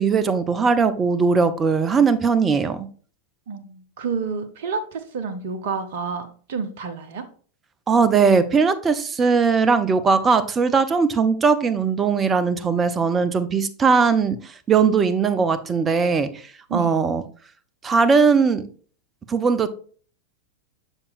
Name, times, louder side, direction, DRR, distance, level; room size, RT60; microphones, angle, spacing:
voice 1, 0.0-2.9 7.9-17.2 17.8-18.7 19.3-19.7, right 5 dB, 20° right, 0.6 m, -19 dB
voice 2, 3.5-7.3 16.7-17.0, right 5 dB, 55° right, 0.8 m, -29 dB
7.1 x 6.8 x 2.5 m
figure-of-eight pair, 90°, 0 cm